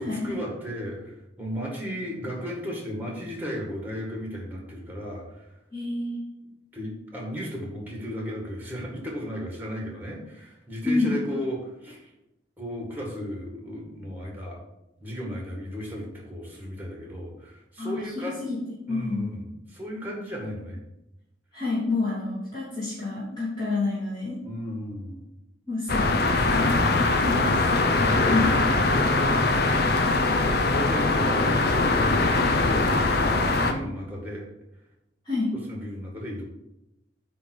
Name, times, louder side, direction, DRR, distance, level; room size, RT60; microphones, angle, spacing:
voice 1, 0.0-5.5 6.7-12.1 12.6-14.6 15.0-18.5 18.9-20.8 24.4-25.3 28.0-28.7 29.1-30.0 30.5-34.5 35.7-36.4, equal, 10° right, -1 dB, 1.9 m, -35 dB
voice 2, 5.7-6.2 10.8-11.2 17.8-18.6 18.9-19.3 21.5-24.4 25.7-26.1 26.4-27.6 28.3-28.5 35.2-35.5, left 3 dB, 25° left, -10 dB, 2.9 m, -28 dB
sound 1, 25.9-33.7, left 3 dB, 55° left, 0.8 m, -22 dB
9.2 x 3.6 x 6.4 m, 0.88 s
head